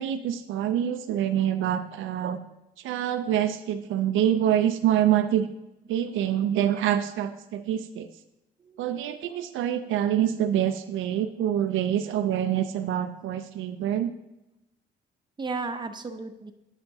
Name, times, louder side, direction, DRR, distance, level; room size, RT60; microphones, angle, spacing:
voice 1, 0.0-2.4 2.8-5.5 5.9-8.1 8.8-14.1, right 10 dB, 85° right, 9 dB, 0.5 m, -26 dB
voice 2, 8.6-9.5 15.4-16.5, right 4 dB, 20° right, 7 dB, 0.7 m, -36 dB
10.5 x 5.8 x 2.7 m, 0.93 s
cardioid pair, 90°, 20 cm